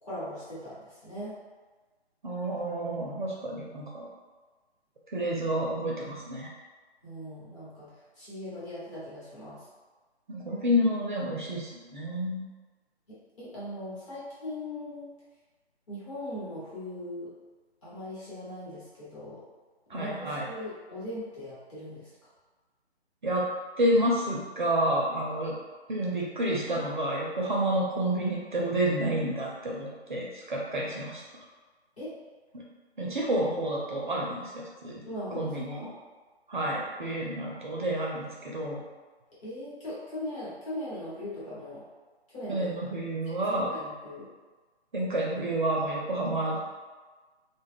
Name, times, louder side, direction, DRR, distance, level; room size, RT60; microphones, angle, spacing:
voice 1, 0.0-1.4 7.0-9.6 13.4-15.1 15.9-17.3 17.8-19.4 19.9-22.1 32.0-32.2 35.1-35.9 39.4-41.8 42.3-42.7 43.5-44.3, left 1 dB, 30° left, -11 dB, 1.1 m, -39 dB
voice 2, 2.2-4.1 5.1-6.5 10.3-12.5 19.9-20.5 23.2-23.5 23.8-25.5 25.9-31.2 32.5-32.6 33.0-35.0 35.4-35.9 36.5-38.8 42.5-43.7 44.9-46.6, right 1 dB, 45° right, -3 dB, 0.5 m, -29 dB
2.3 x 2.0 x 3.3 m, 1.3 s
figure-of-eight pair, 150°, 33 cm